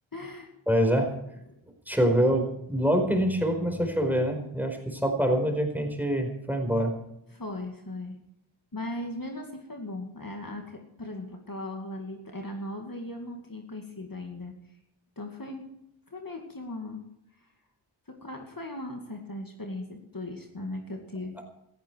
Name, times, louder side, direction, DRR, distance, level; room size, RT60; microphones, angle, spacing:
voice 1, 0.1-0.5 1.5-1.6 7.3-8.2 8.7-14.5 15.2-15.7 16.1-17.0 18.1-21.4, left 1 dB, 40° left, 2 dB, 2.4 m, -38 dB
voice 2, 0.7-1.1 1.9-6.9, equal, 5° right, 3 dB, 4.6 m, -25 dB
17.5 x 14.5 x 4.7 m, 0.79 s
wide cardioid pair, 60°, 49 cm